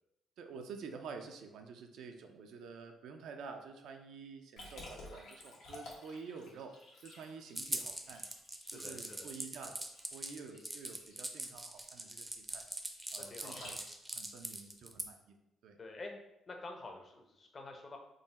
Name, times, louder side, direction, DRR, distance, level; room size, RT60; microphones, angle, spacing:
voice 1, 0.4-6.8 7.0-8.2 8.7-9.8 10.1-12.7 13.1-13.8 14.1-15.8, right 5 dB, 80° right, 5 dB, 0.4 m, -49 dB
Liquid, 4.6-14.2, left 2 dB, 80° left, 1.0 m, -54 dB
sound 1, 7.6-15.0, right 1 dB, 10° right, 0.5 m, -42 dB
voice 2, 8.6-9.3 13.3-13.8 15.8-16.1 16.5-18.0, left 2 dB, 40° left, 3 dB, 0.7 m, -48 dB
3.7 x 2.1 x 4.0 m, 0.91 s
cardioid pair, 90°, 0 cm